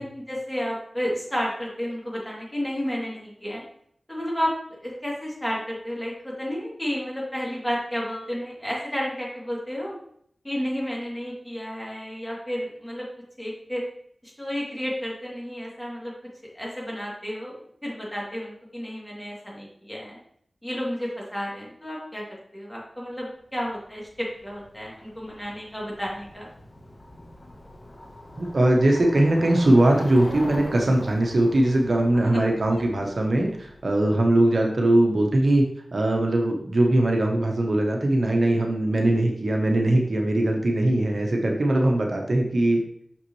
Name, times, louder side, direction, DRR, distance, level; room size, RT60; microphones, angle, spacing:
voice 1, 0.0-3.6 4.1-4.5 4.8-9.9 10.4-13.1 13.4-13.8 14.2-16.1 16.5-20.2 20.6-22.2 22.5-26.5 32.1-32.4 32.7-32.8, equal, 10° left, -4 dB, 2.8 m, -31 dB
Bicycle, 23.6-34.5, left 1 dB, 40° left, 1.1 m, -42 dB
voice 2, 28.4-35.6 35.9-42.8, right 1 dB, 65° right, 1 dB, 1.0 m, -21 dB
6.1 x 5.8 x 3.1 m, 0.67 s
cardioid pair, 45°, 0 cm